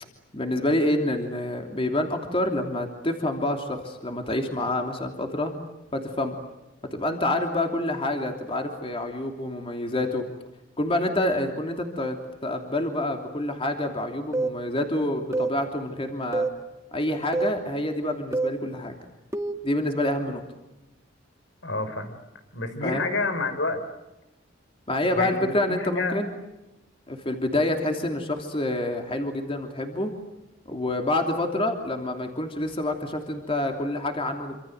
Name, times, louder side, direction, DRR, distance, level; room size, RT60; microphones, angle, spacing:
voice 1, 0.3-5.5 5.9-6.3 6.9-10.2 10.8-12.2 12.4-16.5 16.9-18.9 19.6-20.4 22.8-23.1 24.9-26.3 27.1-30.1 30.7-34.6, left 1 dB, 30° left, 4 dB, 3.0 m, -27 dB
sound 1, 14.3-14.6 15.3-15.6 16.3-16.6 17.3-17.6 18.3-18.6 19.3-19.6, right 3 dB, 15° right, 1.7 m, -26 dB
voice 2, 21.6-22.2 22.5-23.8 25.1-26.2, left 3 dB, 75° left, 9 dB, 4.5 m, -29 dB
27.5 x 26.5 x 8.0 m, 1.0 s
head